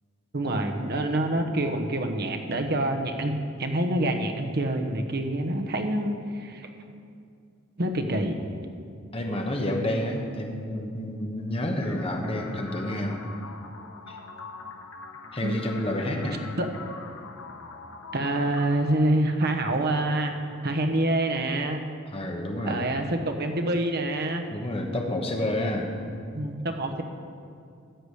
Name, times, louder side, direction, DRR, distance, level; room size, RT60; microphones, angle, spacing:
voice 1, 0.3-3.3 3.6-6.7 7.8-8.4 15.4-15.5 16.6-16.7 18.1-20.3 20.6-21.8 22.6-24.4 26.3-27.0, right 1 dB, 50° right, 4 dB, 1.1 m, -26 dB
voice 2, 9.1-13.2 14.1-14.2 15.3-16.4 22.1-22.9 24.5-25.9, left 1 dB, 30° left, 2 dB, 1.2 m, -29 dB
sound 1, 11.8-19.8, left 4 dB, 85° left, 1.1 m, -44 dB
13.5 x 4.9 x 8.4 m, 2.4 s
head